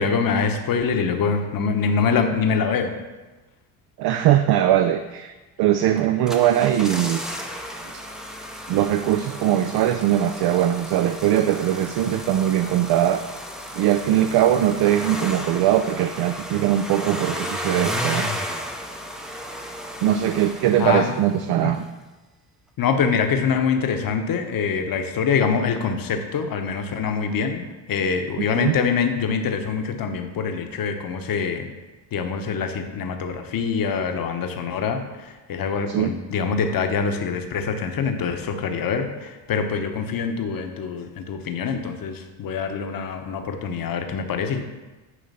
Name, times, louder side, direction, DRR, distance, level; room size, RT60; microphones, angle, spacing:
voice 1, 0.0-2.9 20.8-21.2 21.6-21.7 22.8-31.7 32.1-44.6, left 6 dB, 45° left, 6 dB, 1.0 m, -24 dB
voice 2, 4.0-5.3 5.6-7.2 8.7-13.2 13.7-18.3 20.0-21.9 28.4-28.7 35.9-36.1, right 11 dB, 55° right, 8 dB, 0.5 m, -21 dB
sound 1, 6.0-21.5 21.7-21.8, equal, ahead, 0.6 m, -33 dB
9.5 x 3.2 x 5.4 m, 1.2 s
supercardioid pair, 95°, 48 cm